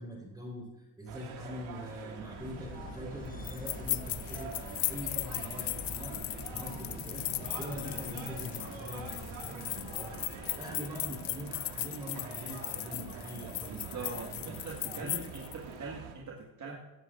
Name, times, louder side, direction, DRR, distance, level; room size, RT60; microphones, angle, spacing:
voice 1, 0.0-7.3 7.5-15.2, equal, 10° right, -2 dB, 3.8 m, -44 dB
sound 1, 1.1-16.1, right 5 dB, 70° right, 2.1 m, -45 dB
sound 2, 2.4-10.6, left 3 dB, 15° left, 0.7 m, -46 dB
sound 3, 3.4-15.6, left 17 dB, 60° left, 0.6 m, -38 dB
voice 2, 13.7-16.8, right 4 dB, 35° right, -1 dB, 1.7 m, -42 dB
17.0 x 11.0 x 2.5 m, 1.1 s
supercardioid pair, 95°, 49 cm